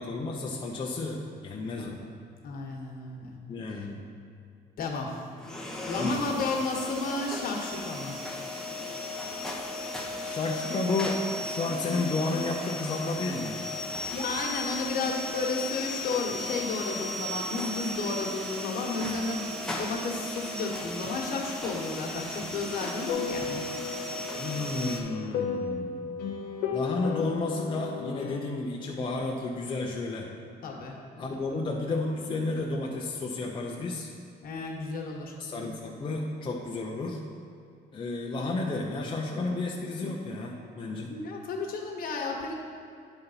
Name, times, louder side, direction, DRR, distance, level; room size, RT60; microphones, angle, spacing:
voice 1, 0.0-2.0 3.5-4.0 6.0-6.2 10.2-13.6 24.4-26.3 26.7-30.3 31.2-34.1 35.4-37.2 37.9-41.1, left 3 dB, 30° left, -1 dB, 0.7 m, -32 dB
voice 2, 2.4-3.4 3.7-3.9 4.8-5.2 5.8-8.2 14.1-23.6 30.6-31.0 31.3-31.6 34.4-35.3 41.1-42.5, left 3 dB, 60° left, 0 dB, 1.4 m, -32 dB
sound 1, 5.4-25.0, left 1 dB, 5° left, 0.9 m, -36 dB
sound 2, 23.1-28.4, left 6 dB, 90° left, 1.0 m, -34 dB
9.3 x 4.0 x 5.7 m, 2.5 s
cardioid pair, 110°, 17 cm